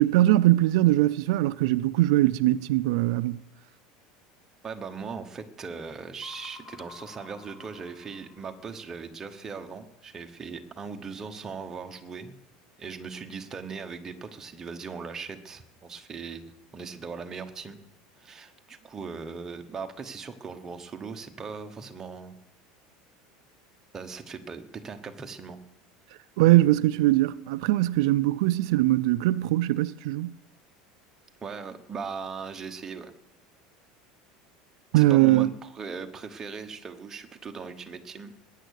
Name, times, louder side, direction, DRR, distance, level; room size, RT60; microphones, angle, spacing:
voice 1, 0.0-3.4 26.4-30.3 34.9-35.5, right 16 dB, 75° right, 0.4 m, -21 dB
voice 2, 4.6-12.3 12.8-17.8 18.2-22.4 23.9-25.6 31.4-33.1 34.9-38.3, right 5 dB, 15° right, 1.0 m, -39 dB
sound 1, 6.2-8.8, left 5 dB, 10° left, 1.4 m, -50 dB
20.0 x 9.2 x 6.5 m
cardioid pair, 170°, 3 cm